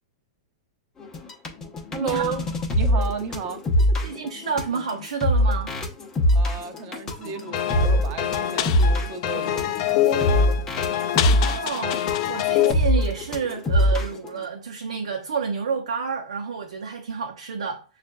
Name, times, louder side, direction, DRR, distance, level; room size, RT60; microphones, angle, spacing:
sound 1, 1.0-14.3, equal, 15° left, 0.8 m, -23 dB
voice 1, 1.9-2.4 2.7-3.6 6.3-10.5, right 6 dB, 35° right, 0.7 m, -33 dB
voice 2, 4.0-5.7 11.3-17.8, right 5 dB, 85° right, 0.7 m, -29 dB
sound 2, 7.5-12.7, left 11 dB, 50° left, 0.4 m, -24 dB
6.3 x 2.4 x 2.2 m
hypercardioid pair, 135°, 3 cm